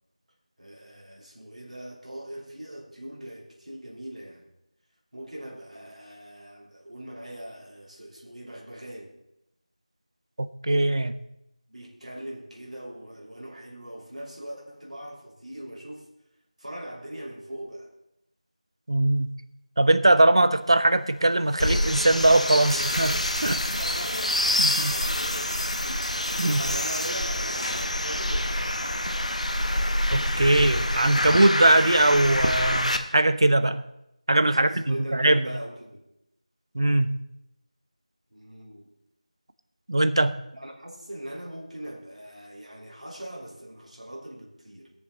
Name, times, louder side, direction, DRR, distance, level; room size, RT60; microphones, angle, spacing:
voice 1, 0.6-4.5 5.1-9.1 11.7-16.1 16.6-17.9 23.6-25.5 25.8-26.1 26.6-29.0 34.5-36.0 38.3-38.9 40.5-44.9, right 1 dB, 75° right, 3.0 m, -41 dB
voice 2, 10.6-11.2 18.9-19.4 19.8-23.8 24.6-24.9 26.4-26.6 30.1-33.8 34.3-35.4 36.7-37.2 39.9-40.4, right 1 dB, 40° right, 0.5 m, -21 dB
sound 1, 21.2-27.9 29.2-29.3, left 1 dB, 50° left, 1.6 m, -35 dB
sound 2, 21.6-33.0, left 1 dB, 70° left, 0.9 m, -27 dB
20.5 x 7.0 x 3.8 m
figure-of-eight pair, 170°, 4 cm